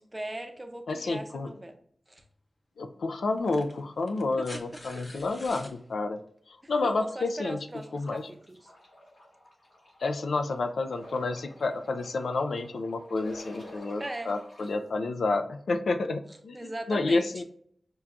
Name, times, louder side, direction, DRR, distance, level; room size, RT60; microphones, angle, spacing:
voice 1, 0.1-1.8 2.1-2.2 4.4-4.5 6.6-8.7 14.0-14.3 16.5-17.4, right 1 dB, 20° right, 6 dB, 0.5 m, -39 dB
voice 2, 0.9-1.5 2.8-6.2 6.5-7.7 7.9-8.3 10.0-16.6 16.9-17.4, left 3 dB, 90° left, 9 dB, 0.3 m, -30 dB
sound 1, 2.2-2.3 3.3-5.8 7.3-7.4, left 1 dB, 40° left, 0.6 m, -47 dB
sound 2, 7.8-14.7, equal, 65° left, 1.4 m, -50 dB
6.0 x 2.2 x 2.4 m, 0.65 s
wide cardioid pair, 80°, 0 cm